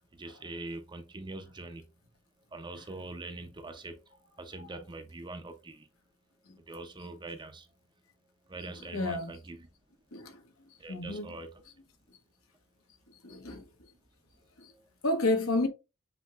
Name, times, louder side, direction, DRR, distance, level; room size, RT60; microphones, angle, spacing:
voice 1, 0.1-1.8 2.5-4.0 4.4-5.9 6.7-7.7 8.5-9.7 10.8-11.6 14.7-14.9, right 2 dB, 20° right, 0.6 m, -43 dB
voice 2, 8.9-9.3 10.1-10.3 10.9-11.2 13.2-13.6 15.0-15.7, left 2 dB, 70° left, 1.1 m, -29 dB
8.0 x 2.8 x 2.4 m
head